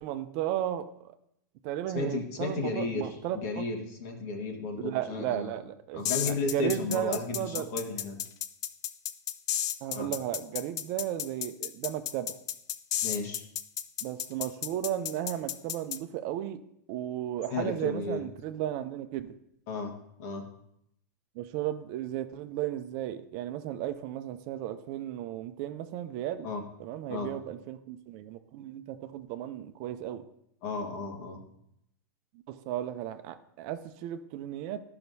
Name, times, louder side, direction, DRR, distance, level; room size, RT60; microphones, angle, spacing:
voice 1, 0.0-1.1 1.6-3.6 4.8-7.7 9.8-12.4 14.0-16.6 16.9-19.3 21.4-26.5 26.8-30.2 32.5-34.8, right 12 dB, 50° right, 9 dB, 0.6 m, -34 dB
voice 2, 1.9-5.5 5.9-8.2 9.9-10.1 13.0-13.5 17.5-18.3 19.7-19.9 20.2-20.5 26.4-26.6 27.1-27.3 30.6-31.4, left 3 dB, 60° left, 2 dB, 1.6 m, -34 dB
sound 1, 6.0-16.0, left 11 dB, 35° left, 0.4 m, -33 dB
12.0 x 5.7 x 2.7 m, 0.76 s
hypercardioid pair, 120°, 10 cm